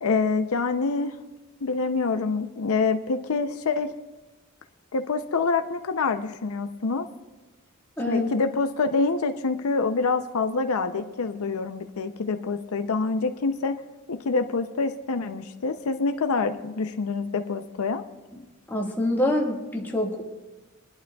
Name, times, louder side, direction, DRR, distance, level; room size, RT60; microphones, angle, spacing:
voice 1, 0.0-1.1 1.6-3.9 4.9-7.1 8.1-13.8 14.1-18.0, left 4 dB, 75° left, 8 dB, 0.6 m, -26 dB
voice 2, 8.0-8.3 18.7-20.2, left 1 dB, 10° left, -2 dB, 1.6 m, -25 dB
23.5 x 11.0 x 2.3 m, 1.1 s
head